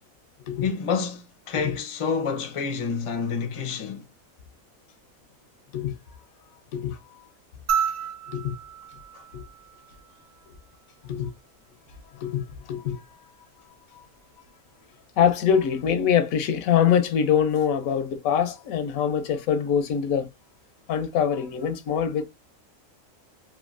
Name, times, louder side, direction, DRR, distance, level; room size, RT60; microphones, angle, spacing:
voice 1, 0.6-4.1 9.1-9.2, left 5 dB, 50° left, 0.4 m, -28 dB
sound 1, 7.7-10.2 11.9-12.0, right 8 dB, 75° right, 1.0 m, -31 dB
voice 2, 12.2-13.2 13.9-14.1 15.2-20.3 20.9-22.2, left 8 dB, 90° left, 1.0 m, -24 dB
3.0 x 2.4 x 2.4 m
omnidirectional pair, 1.4 m